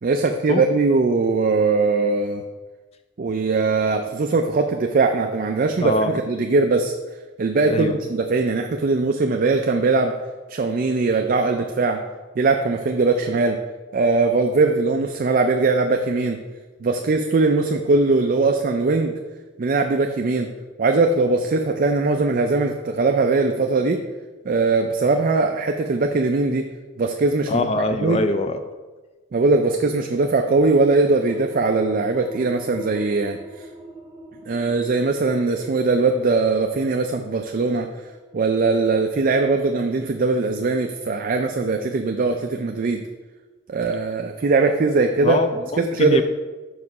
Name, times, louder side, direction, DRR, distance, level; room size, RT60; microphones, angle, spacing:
voice 1, 0.0-2.4 3.2-6.9 7.4-10.1 10.5-12.0 12.4-13.6 13.9-16.4 16.8-19.2 19.6-20.5 20.8-24.0 24.4-26.7 27.0-27.7 28.0-28.2 29.3-33.7 34.5-37.9 38.3-43.0 43.7-45.4 45.8-46.2, right 3 dB, 45° right, 4 dB, 0.4 m, -20 dB
voice 2, 5.8-6.2 7.7-7.9 27.5-28.6 45.2-46.2, left 2 dB, 30° left, 8 dB, 0.3 m, -23 dB
sound 1, 30.5-41.6, right 1 dB, 20° right, 2.3 m, -44 dB
5.9 x 4.8 x 5.4 m, 1.3 s
head